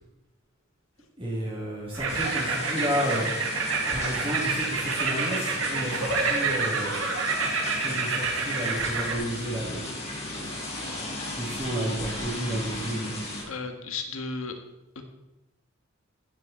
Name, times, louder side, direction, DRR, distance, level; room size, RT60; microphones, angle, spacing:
voice 1, 1.2-3.2 3.9-7.1 7.8-9.9 10.4-10.6 11.4-13.1, right 1 dB, 25° right, -5 dB, 3.2 m, -32 dB
sound 1, 1.9-9.1, right 4 dB, 80° right, 2.1 m, -28 dB
sound 2, 2.1-13.4, left 1 dB, 30° left, 5.2 m, -36 dB
voice 2, 13.5-14.5 14.9-15.0, left 4 dB, 85° left, 6 dB, 1.6 m, -34 dB
15.5 x 7.6 x 4.5 m, 0.94 s
head